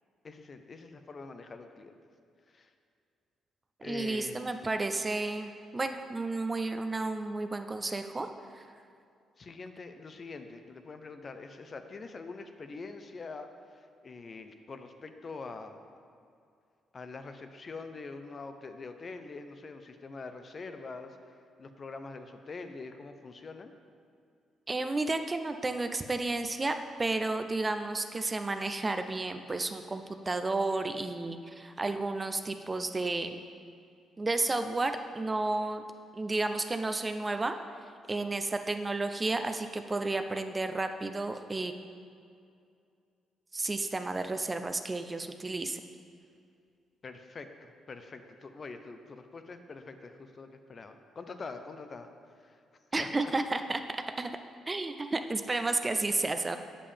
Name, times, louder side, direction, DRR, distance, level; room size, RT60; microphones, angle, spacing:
voice 1, 0.2-2.0 2.5-2.7 3.8-4.5 9.4-16.0 16.9-23.7 47.0-52.1 52.4-52.6 53.0-53.3, left 4 dB, 40° left, 7 dB, 0.5 m, -44 dB
voice 2, 3.8-8.6 24.7-33.4 34.2-35.8 36.1-37.6 38.1-41.7 43.5-45.8 52.9-54.3 54.7-56.6, right 2 dB, 25° right, 8 dB, 0.4 m, -32 dB
7.5 x 6.9 x 3.4 m, 2.4 s
cardioid pair, 90°, 0 cm